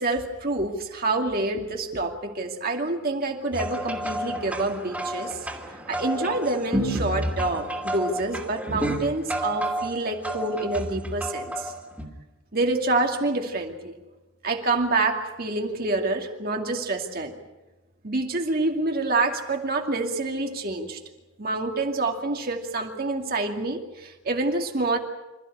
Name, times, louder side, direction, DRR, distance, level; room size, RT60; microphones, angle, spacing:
voice 1, 0.0-5.4 5.9-11.7 12.5-14.0 14.4-17.3 18.0-21.0 21.4-25.0, right 2 dB, 45° right, 2 dB, 2.4 m, -27 dB
sound 1, 3.5-12.1, right 1 dB, 5° right, 2.8 m, -31 dB
27.0 x 14.5 x 9.7 m, 1.1 s
head